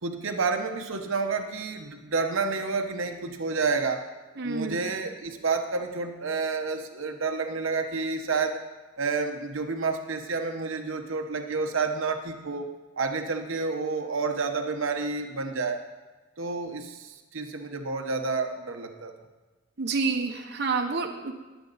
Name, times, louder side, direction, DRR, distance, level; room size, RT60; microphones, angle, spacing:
voice 1, 0.0-4.1 4.4-8.7 9.0-12.7 13.0-15.8 16.4-19.1, right 4 dB, 75° right, 4 dB, 1.1 m, -29 dB
voice 2, 4.4-4.8 19.8-21.3, right 4 dB, 55° right, 3 dB, 1.1 m, -28 dB
21.0 x 8.2 x 4.1 m, 1.2 s
head